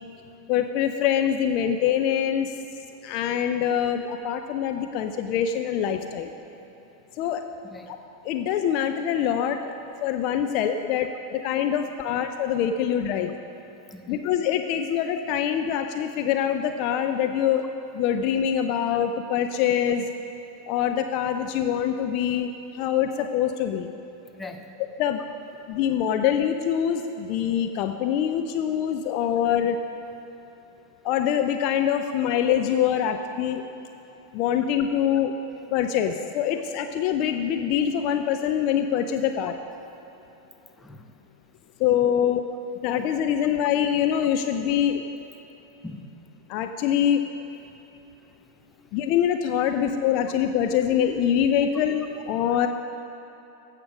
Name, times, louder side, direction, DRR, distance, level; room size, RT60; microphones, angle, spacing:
voice 1, 0.5-2.5 3.0-6.3 7.2-7.4 8.2-9.7 10.0-13.3 14.1-17.7 17.9-20.1 20.7-23.9 25.0-25.2 25.7-29.8 31.0-33.6 34.3-35.3 35.7-39.5 41.8-42.4 42.8-45.0 46.5-47.2 48.9-52.7, left 9 dB, 40° left, 7 dB, 0.5 m, -24 dB
voice 2, 24.3-24.7 26.2-26.3 40.8-41.1 42.2-42.3 45.8-46.1 47.5-47.7 52.6-52.7, left 2 dB, 10° left, 5 dB, 0.8 m, -41 dB
15.5 x 6.7 x 6.1 m, 3.0 s
figure-of-eight pair, 90°, 0 cm